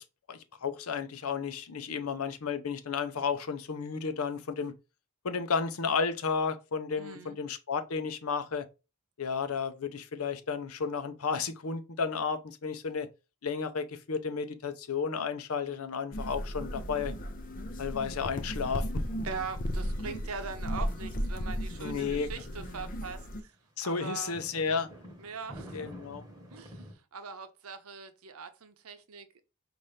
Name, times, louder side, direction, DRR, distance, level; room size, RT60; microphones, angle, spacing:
voice 1, 0.0-4.7 5.2-8.7 9.2-13.1 13.4-17.1 17.8-19.0 21.8-22.3 23.8-24.9 25.7-26.2, left 5 dB, 85° left, 0.6 m, -33 dB
voice 2, 7.0-7.4 19.2-23.5 23.8-24.4 25.2-25.9 26.5-29.4, right 5 dB, 85° right, 0.7 m, -42 dB
sound 1, 16.1-23.4, equal, 40° left, 0.5 m, -35 dB
sound 2, 20.9-22.8 23.4-23.5 24.1-26.9, equal, 20° right, 1.1 m, -48 dB
5.5 x 2.6 x 3.2 m
head